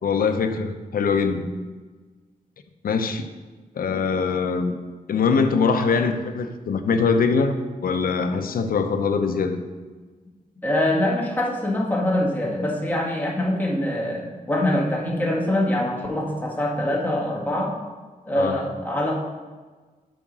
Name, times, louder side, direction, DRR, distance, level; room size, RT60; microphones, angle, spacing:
voice 1, 0.0-1.5 2.8-3.3 3.7-4.8 5.1-7.6 7.8-9.6 18.4-18.6, left 5 dB, 85° left, 7 dB, 0.7 m, -22 dB
voice 2, 10.6-17.7 18.2-19.1, left 1 dB, 10° left, -2 dB, 1.5 m, -24 dB
7.3 x 5.2 x 6.1 m, 1.3 s
wide cardioid pair, 160°, 15 cm